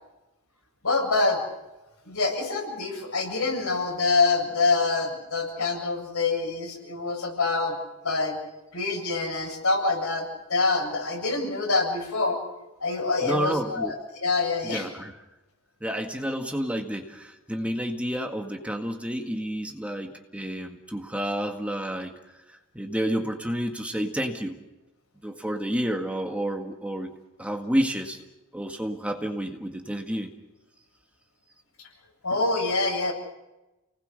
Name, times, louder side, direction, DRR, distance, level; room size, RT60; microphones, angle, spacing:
voice 1, 0.8-1.4 2.0-7.8 8.0-8.4 8.7-12.4 12.8-14.9 32.2-33.1, left 3 dB, 90° left, 1 dB, 7.8 m, -26 dB
voice 2, 13.2-13.9 14.6-15.2 15.8-24.6 25.2-27.1 27.4-28.2 28.5-30.3, equal, 5° right, 3 dB, 1.8 m, -30 dB
29.5 x 19.5 x 6.7 m, 1.0 s
head